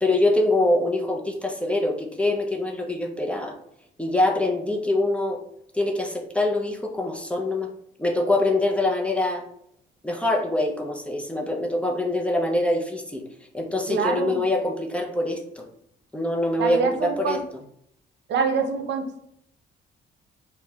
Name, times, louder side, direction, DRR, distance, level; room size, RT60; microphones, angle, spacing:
voice 1, 0.0-3.6 4.0-5.4 5.7-7.7 8.0-9.4 10.0-13.3 13.5-15.7 16.1-17.6, left 2 dB, 5° left, 1 dB, 0.5 m, -24 dB
voice 2, 13.9-14.4 16.6-17.4 18.3-19.3, right 5 dB, 60° right, 5 dB, 0.6 m, -26 dB
5.9 x 2.1 x 2.3 m, 0.73 s
cardioid pair, 90°, 20 cm